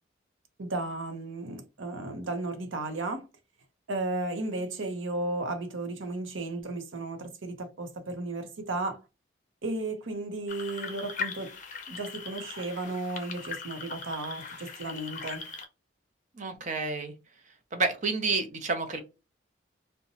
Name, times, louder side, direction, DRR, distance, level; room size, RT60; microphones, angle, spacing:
voice 1, 0.6-3.3 3.9-9.0 9.6-11.5 11.9-15.5, right 2 dB, 90° right, 0.7 m, -34 dB
sound 1, 10.5-15.7, left 4 dB, 40° left, 0.6 m, -39 dB
voice 2, 16.4-17.1 17.7-19.0, right 3 dB, 40° right, 0.6 m, -29 dB
2.8 x 2.2 x 2.6 m
head